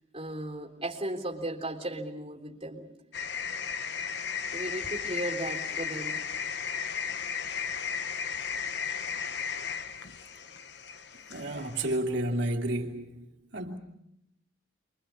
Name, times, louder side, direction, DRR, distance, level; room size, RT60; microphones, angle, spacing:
voice 1, 0.1-2.9 4.5-6.3, right 1 dB, 30° right, 3.5 m, -36 dB
sound 1, 3.1-11.9, left 7 dB, 60° left, 1.0 m, -35 dB
voice 2, 11.3-13.8, right 1 dB, 65° right, 2.5 m, -31 dB
29.0 x 23.0 x 7.2 m
head